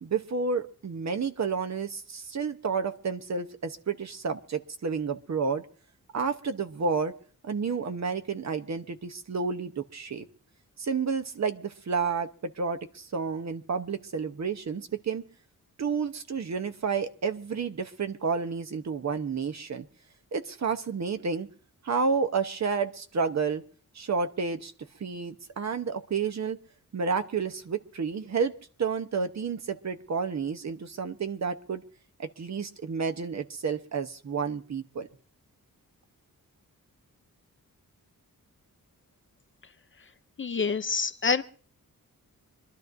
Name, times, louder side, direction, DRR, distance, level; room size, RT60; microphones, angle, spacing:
voice 1, 0.0-5.7 6.1-7.1 7.4-10.3 10.8-15.2 15.8-19.9 20.3-21.5 21.8-23.6 23.9-24.7 25.0-26.6 26.9-28.5 28.8-31.8 32.2-35.1, right 5 dB, 50° right, 8 dB, 0.9 m, -30 dB
voice 2, 40.4-41.4, left 5 dB, 35° left, 11 dB, 0.5 m, -27 dB
25.5 x 12.0 x 2.6 m, 0.44 s
wide cardioid pair, 140°, 35 cm